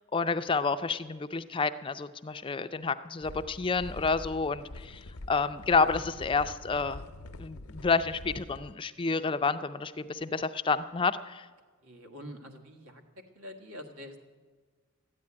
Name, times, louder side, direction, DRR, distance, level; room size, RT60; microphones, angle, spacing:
voice 1, 0.1-5.0 5.3-7.0 7.4-11.4, left 4 dB, 25° left, 11 dB, 0.4 m, -29 dB
sound 1, 3.2-8.7, left 1 dB, 80° left, 0.8 m, -45 dB
voice 2, 11.8-14.2, left 1 dB, 85° right, 4 dB, 1.8 m, -46 dB
13.0 x 9.5 x 9.8 m, 1.4 s
head